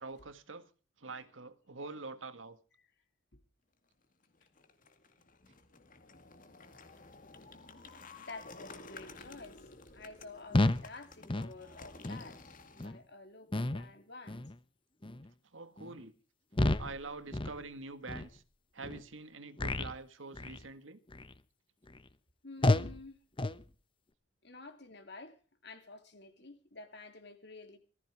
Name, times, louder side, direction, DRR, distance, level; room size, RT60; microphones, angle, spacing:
voice 1, 0.0-0.7 1.0-2.6 15.5-16.1 16.8-18.4 18.7-21.0, right 3 dB, 85° right, 1.8 m, -45 dB
sound 1, 4.2-12.9, left 3 dB, 45° left, 2.2 m, -53 dB
voice 2, 8.2-9.7 9.9-14.4 22.4-23.2 24.4-25.4 25.6-27.8, left 3 dB, 60° left, 2.9 m, -50 dB
sound 2, 10.5-10.9 11.3-11.5 12.0-12.3 12.8-13.0 13.5-13.9 14.3-14.6 15.0-15.3 15.8-16.0 16.5-17.0 17.3-17.6 18.1-18.2 18.8-19.0 19.6-20.0 20.3-20.6 21.1-21.4 21.9-22.0 22.6-23.0 23.4-23.6, left 2 dB, 25° left, 0.9 m, -31 dB
19.0 x 14.5 x 4.9 m
head